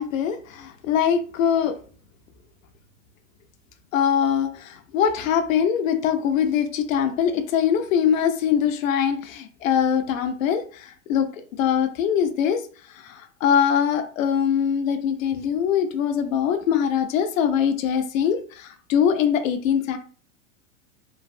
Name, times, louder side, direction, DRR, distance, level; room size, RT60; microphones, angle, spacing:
voice 1, 0.0-1.8 3.9-12.6 12.9-20.0, left 8 dB, 80° left, 7 dB, 0.6 m, -22 dB
3.1 x 2.4 x 2.5 m, 0.41 s
supercardioid pair, 145°, 39 cm